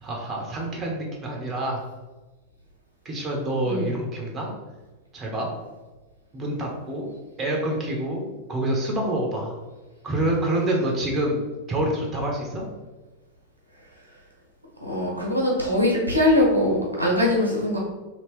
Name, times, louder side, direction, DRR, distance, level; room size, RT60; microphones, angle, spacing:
voice 1, 0.0-1.8 3.0-4.5 5.1-5.5 6.3-7.1 7.4-8.2 8.5-9.6 10.0-12.7, right 1 dB, 25° right, 0 dB, 0.8 m, -27 dB
voice 2, 14.8-17.8, left 1 dB, 85° right, -2 dB, 0.9 m, -22 dB
2.9 x 2.9 x 3.2 m, 1.2 s
figure-of-eight pair, 90°, 0 cm